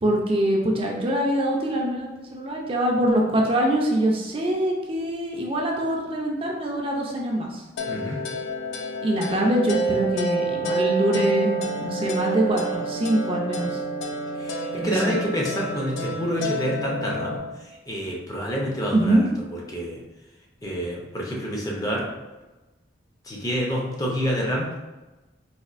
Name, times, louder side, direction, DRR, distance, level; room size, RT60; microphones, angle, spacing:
voice 1, 0.0-7.6 9.0-13.8 14.8-15.2 18.9-19.2, right 1 dB, 30° right, -1 dB, 0.5 m, -24 dB
sound 1, 7.8-17.4, right 2 dB, 90° left, 0.4 m, -28 dB
voice 2, 7.9-8.2 14.4-17.4 17.9-19.2 19.7-20.0 20.6-22.1 23.3-24.7, equal, 20° left, -2 dB, 0.5 m, -28 dB
4.2 x 2.5 x 2.4 m, 1.1 s
head